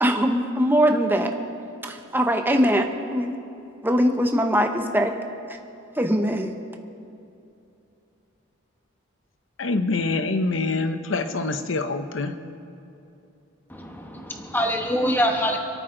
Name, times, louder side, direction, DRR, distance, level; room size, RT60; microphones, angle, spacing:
voice 1, 0.0-1.3 1.8-3.4 3.8-5.1 6.0-6.5, equal, 10° right, 0.9 m, -21 dB
voice 2, 9.6-12.3, left 3 dB, 65° left, 0.8 m, -25 dB
voice 3, 13.7-15.6, equal, 10° left, 1.3 m, -24 dB
27.0 x 9.2 x 3.9 m
head